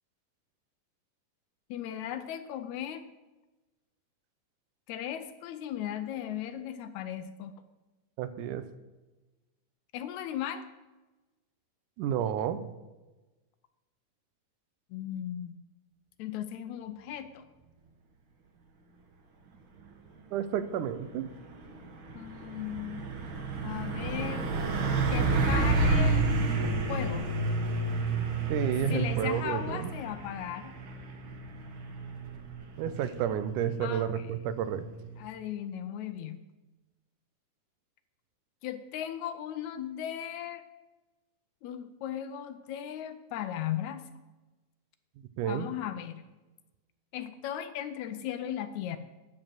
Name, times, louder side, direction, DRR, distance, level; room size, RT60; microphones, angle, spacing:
voice 1, 1.7-3.0 4.9-7.5 9.9-10.6 14.9-15.5 16.2-17.4 22.1-23.1 23.6-24.5 25.1-26.3 26.9-27.2 28.9-30.7 33.8-34.2 35.2-36.4 38.6-40.6 41.6-44.1 45.5-46.2 47.1-49.0, left 10 dB, 75° left, 10 dB, 1.8 m, -37 dB
voice 2, 8.2-8.6 12.0-12.7 20.3-21.3 28.5-29.9 32.8-34.9 45.4-45.7, right 9 dB, 80° right, 12 dB, 2.2 m, -31 dB
Truck, 21.0-35.3, right 3 dB, 50° right, 1.6 m, -30 dB
9.7 x 7.7 x 7.5 m, 1.1 s
omnidirectional pair, 3.7 m